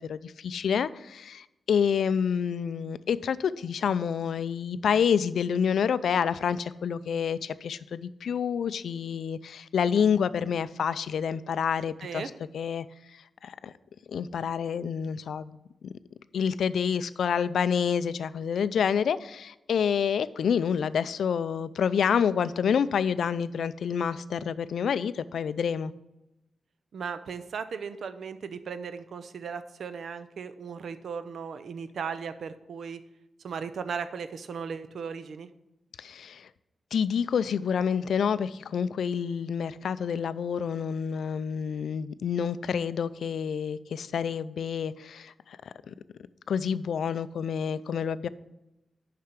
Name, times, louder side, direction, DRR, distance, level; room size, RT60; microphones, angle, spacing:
voice 1, 0.0-12.9 13.1-13.7 14.1-15.5 16.3-25.9 36.0-36.5 36.9-45.9 46.5-48.3, left 7 dB, 90° left, 15 dB, 0.3 m, -28 dB
voice 2, 26.9-33.0 33.4-35.5, right 6 dB, 70° right, 12 dB, 0.6 m, -37 dB
6.8 x 5.7 x 6.5 m, 0.93 s
wide cardioid pair, 135°, 0 cm